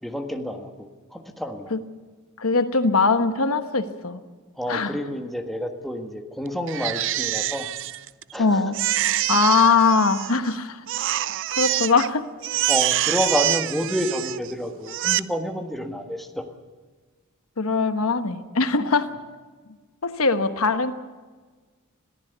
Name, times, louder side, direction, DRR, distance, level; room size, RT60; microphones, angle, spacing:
voice 1, 0.0-1.7 4.6-7.7 8.3-8.8 12.7-16.5, equal, ahead, 3 dB, 1.6 m, -29 dB
voice 2, 2.4-4.2 4.7-5.0 8.4-8.8 9.3-11.2 11.5-12.3 17.6-19.1 20.0-20.9, left 4 dB, 75° left, 9 dB, 1.2 m, -21 dB
Crying sobbing, 6.7-8.4 8.7-10.5 10.9-12.1 12.4-14.5 14.8-15.2, right 14 dB, 60° right, 0.6 m, -25 dB
21.5 x 15.0 x 8.1 m, 1.4 s
head